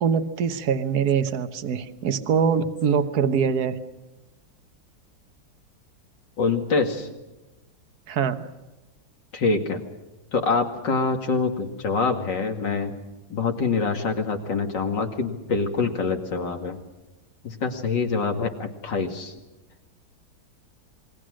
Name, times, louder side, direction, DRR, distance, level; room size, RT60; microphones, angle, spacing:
voice 1, 0.0-3.8 8.1-8.5, right 6 dB, 55° right, 10 dB, 1.6 m, -23 dB
voice 2, 6.4-7.1 9.3-9.8 10.3-12.9 13.3-16.8 17.4-19.3, left 4 dB, 65° left, 4 dB, 2.9 m, -25 dB
28.0 x 21.5 x 6.4 m, 1.1 s
omnidirectional pair, 2.1 m